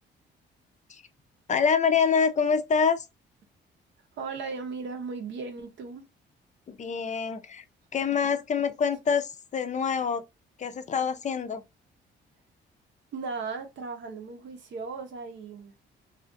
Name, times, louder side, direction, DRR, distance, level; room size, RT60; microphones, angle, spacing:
voice 1, 1.5-3.1 6.7-7.6 7.9-10.2 10.6-11.6, left 6 dB, 35° left, 0.4 m, -26 dB
voice 2, 4.2-6.1 13.1-15.8, right 4 dB, 70° right, 0.8 m, -36 dB
2.4 x 2.4 x 2.5 m
cardioid pair, 90°, 20 cm